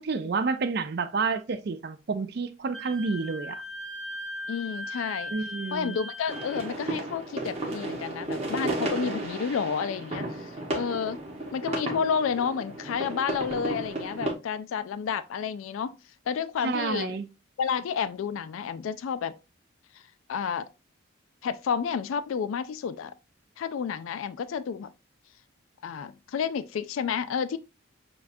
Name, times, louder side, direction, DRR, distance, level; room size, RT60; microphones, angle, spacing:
voice 1, 0.1-3.6 5.3-6.0 16.6-17.3, right 4 dB, 50° right, 0.4 m, -29 dB
Wind instrument woodwind instrument, 2.7-6.7, left 1 dB, ahead, 0.9 m, -38 dB
voice 2, 4.5-5.3 5.7-11.2 11.5-15.9 16.3-17.2 17.6-19.4 20.3-20.7 21.4-23.1 23.6-24.9 25.8-27.6, left 6 dB, 80° left, 0.3 m, -30 dB
sound 1, 6.3-14.3, right 2 dB, 30° right, 1.1 m, -33 dB
6.8 x 2.4 x 2.6 m
head